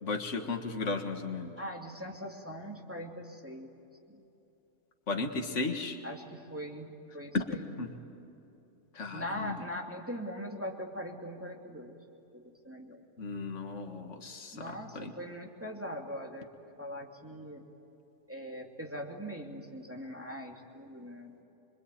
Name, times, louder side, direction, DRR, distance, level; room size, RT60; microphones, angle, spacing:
voice 1, 0.0-1.5 5.1-6.0 7.3-7.5 7.8-7.9 8.9-9.6 13.2-15.1, left 3 dB, 75° left, 4 dB, 2.1 m, -35 dB
voice 2, 1.6-3.7 4.1-4.2 6.0-7.6 9.1-11.9 12.3-13.0 14.5-16.5 16.8-17.6 18.3-21.4, equal, 10° right, 0 dB, 2.6 m, -41 dB
26.0 x 24.0 x 9.1 m, 2.9 s
omnidirectional pair, 1.3 m